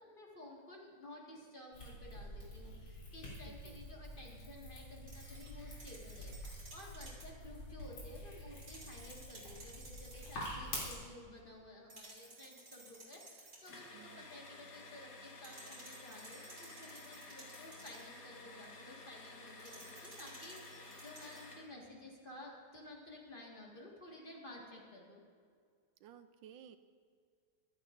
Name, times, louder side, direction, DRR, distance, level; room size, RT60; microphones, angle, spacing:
voice 1, 0.0-25.2, left 1 dB, 25° left, -2 dB, 1.7 m, -54 dB
sound 1, 1.7-10.9, left 1 dB, 75° left, 3.8 m, -47 dB
voice 2, 3.5-3.8 13.9-14.2 26.0-26.8, right 9 dB, 75° right, 10 dB, 1.2 m, -56 dB
sound 2, 5.1-7.4 8.5-10.5 11.9-13.9 15.4-18.2 19.6-21.6, right 2 dB, 45° right, 2.8 m, -56 dB
sound 3, 13.7-21.7, left 3 dB, 45° left, 1.6 m, -53 dB
14.5 x 12.5 x 2.6 m, 2.1 s
omnidirectional pair, 2.3 m